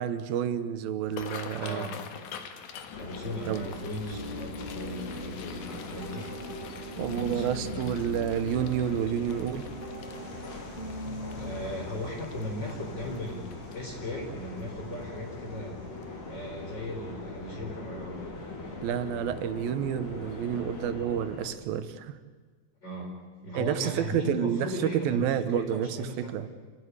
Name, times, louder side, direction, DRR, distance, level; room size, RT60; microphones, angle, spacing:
voice 1, 0.0-1.9 3.5-3.7 7.0-9.7 18.8-22.2 23.5-26.5, right 9 dB, 85° right, 12 dB, 2.9 m, -29 dB
sound 1, 1.0-14.1 14.6-14.9 15.2-15.6 16.0-16.2 17.4-17.6 18.0-18.1 18.6-18.7, left 7 dB, 90° left, 3.3 m, -46 dB
voice 2, 1.6-2.0 3.0-6.2 7.0-7.8 11.4-15.8 16.3-18.8 22.8-23.1 23.4-26.5, left 1 dB, 30° left, 1 dB, 4.8 m, -37 dB
sound 2, 2.9-21.5, left 3 dB, 60° left, 4.9 m, -42 dB
sound 3, 4.1-11.7, left 1 dB, 15° right, 1.2 m, -40 dB
27.5 x 15.5 x 9.6 m, 1.5 s
omnidirectional pair, 4.1 m